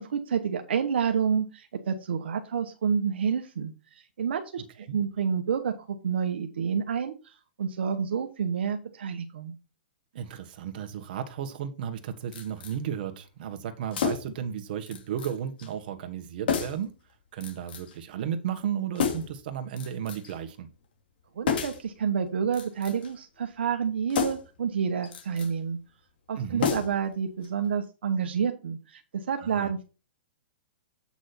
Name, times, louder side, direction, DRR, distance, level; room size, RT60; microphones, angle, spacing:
voice 1, 0.0-3.7 4.2-4.6 4.9-7.3 7.6-9.5 21.3-25.8 26.3-29.8, right 7 dB, 80° right, 1.2 m, -29 dB
voice 2, 10.1-16.9 17.3-20.7 26.3-26.7 29.4-29.7, right 9 dB, 55° right, 1.6 m, -34 dB
sound 1, 12.3-12.8 13.9-14.4 14.9-15.3 15.6-15.7 16.5-16.9 17.4-18.0 19.0-19.4 19.8-20.4 21.5-21.9 22.5-23.1 24.1-24.6 25.0-25.5 26.6-27.1 27.4-27.5, left 7 dB, 65° left, 2.7 m, -30 dB
8.4 x 6.1 x 4.3 m
hypercardioid pair, 145°, 6 cm